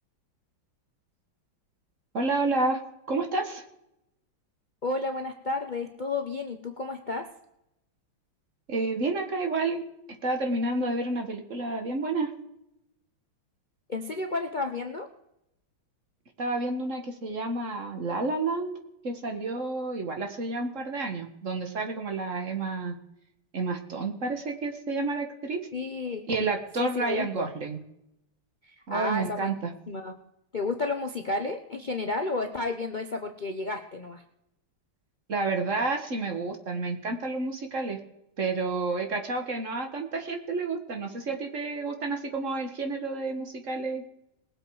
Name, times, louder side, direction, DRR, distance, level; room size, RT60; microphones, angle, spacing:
voice 1, 2.1-2.8 3.1-3.6 8.7-9.8 10.2-12.3 16.4-18.7 19.0-23.0 23.5-25.7 26.3-27.8 28.9-29.7 35.3-38.0 38.4-44.0, right 3 dB, 40° right, 4 dB, 1.8 m, -30 dB
voice 2, 4.8-7.3 13.9-15.1 25.7-26.2 26.8-27.5 28.6-29.5 29.9-30.1 30.5-34.2, left 3 dB, 80° left, 5 dB, 0.4 m, -32 dB
20.5 x 7.7 x 4.8 m, 0.82 s
omnidirectional pair, 2.3 m